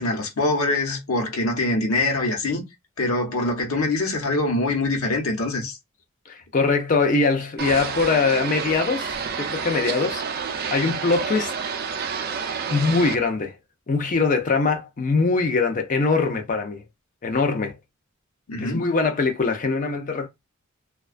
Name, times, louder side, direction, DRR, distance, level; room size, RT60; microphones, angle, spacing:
voice 1, 0.0-2.6 3.0-5.8 18.5-18.8, left 2 dB, 80° left, 0.8 m, -24 dB
voice 2, 6.3-10.2 10.7-11.5 12.7-13.5 13.9-16.8 17.2-17.7 18.6-20.3, left 4 dB, 40° left, 0.5 m, -22 dB
sound 1, 7.6-13.2, right 6 dB, 45° right, 0.4 m, -29 dB
2.3 x 2.2 x 2.4 m
head